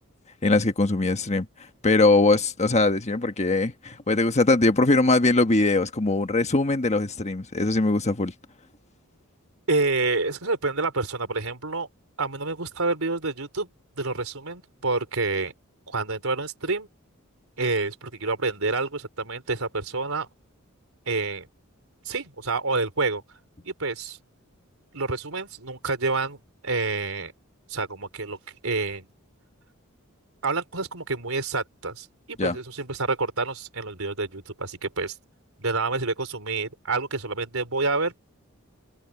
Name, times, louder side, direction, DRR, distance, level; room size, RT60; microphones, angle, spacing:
voice 1, 0.4-1.5 1.8-8.3 32.4-32.6, left 2 dB, 30° left, 1.4 m, -21 dB
voice 2, 9.7-11.9 12.2-13.7 14.0-15.5 15.9-16.9 17.6-20.3 21.1-21.5 22.0-23.2 23.6-24.2 24.9-27.3 27.7-29.1 30.4-35.1 35.6-38.2, right 3 dB, 75° right, 4.2 m, -28 dB
head